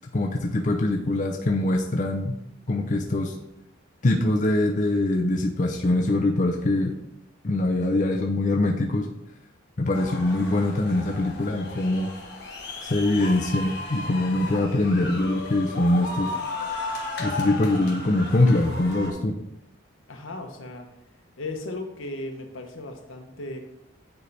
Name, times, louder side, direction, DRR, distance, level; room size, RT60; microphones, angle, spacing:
voice 1, 0.1-2.3 2.7-3.3 4.0-6.9 7.4-9.1 9.8-12.1 12.8-16.3 17.2-19.3, left 2 dB, 40° left, 1 dB, 0.5 m, -23 dB
sound 1, 9.9-19.1, left 3 dB, 55° left, 1.3 m, -35 dB
voice 2, 20.1-20.9 21.4-23.6, left 2 dB, 75° left, 4 dB, 1.0 m, -36 dB
9.4 x 3.3 x 4.1 m, 0.84 s
head